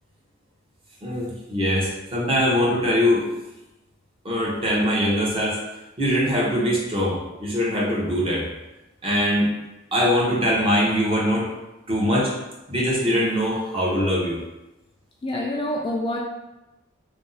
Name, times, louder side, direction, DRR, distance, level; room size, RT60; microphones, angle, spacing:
voice 1, 1.0-3.3 4.2-5.6 6.0-8.5 9.0-9.5 9.9-11.5 11.9-12.3 12.7-14.4, equal, 30° right, -4 dB, 0.7 m, -22 dB
voice 2, 15.2-16.2, left 1 dB, 25° left, -1 dB, 0.3 m, -26 dB
2.5 x 2.0 x 3.8 m, 0.97 s
head